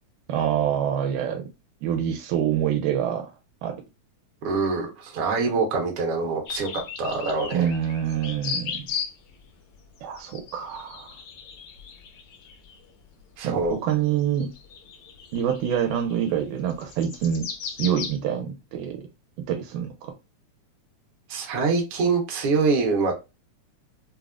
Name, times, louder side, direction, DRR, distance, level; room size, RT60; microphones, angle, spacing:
voice 1, 0.3-1.4 1.8-3.3 3.6-3.8 7.5-8.9 10.0-11.1 13.4-14.5 15.3-19.0 19.5-20.1, right 9 dB, 85° right, 2.1 m, -26 dB
voice 2, 4.4-6.7 7.0-7.7 13.4-13.8 21.3-23.1, right 4 dB, 60° right, 1.6 m, -24 dB
sound 1, 6.5-9.4 9.7-18.2, left 6 dB, 90° left, 1.3 m, -37 dB
5.6 x 2.1 x 2.3 m
omnidirectional pair, 3.7 m